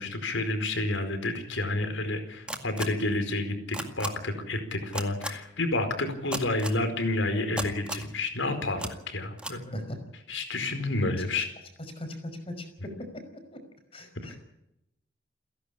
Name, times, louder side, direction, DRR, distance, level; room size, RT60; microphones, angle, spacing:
voice 1, 0.0-9.6 10.3-11.5, left 2 dB, 80° left, 8 dB, 4.7 m, -30 dB
sound 1, 2.5-2.8 3.7-4.1 4.9-5.3 6.3-6.8 7.6-8.1 8.8-8.9 9.4-9.5, right 1 dB, 5° right, 2.0 m, -33 dB
voice 2, 9.7-10.0 10.7-10.8 12.0-12.9 13.5-13.6 13.9-14.4, left 1 dB, 30° left, 7 dB, 5.4 m, -39 dB
29.0 x 11.5 x 8.6 m, 0.82 s
head